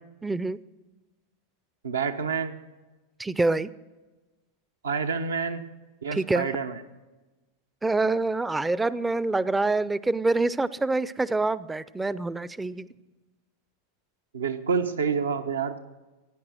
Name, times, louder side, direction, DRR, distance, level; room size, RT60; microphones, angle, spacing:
voice 1, 0.2-0.6 3.2-3.7 6.1-6.5 7.8-12.9, right 2 dB, 10° right, 18 dB, 0.4 m, -26 dB
voice 2, 1.8-2.6 4.8-5.6 6.0-6.8 14.3-15.8, right 6 dB, 85° right, 7 dB, 0.9 m, -28 dB
16.0 x 9.6 x 6.3 m, 1.2 s
hypercardioid pair, 95°, 0 cm